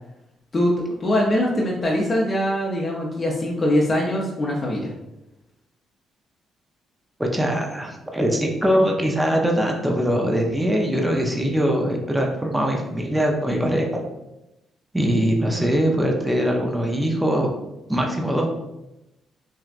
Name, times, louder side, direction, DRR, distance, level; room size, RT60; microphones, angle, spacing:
voice 1, 0.5-4.9, left 1 dB, 35° left, -3 dB, 0.7 m, -22 dB
voice 2, 7.2-14.0 14.9-17.5 17.9-18.5, equal, 5° right, 0 dB, 0.6 m, -22 dB
6.0 x 2.3 x 2.5 m, 0.94 s
cardioid pair, 90°, 0 cm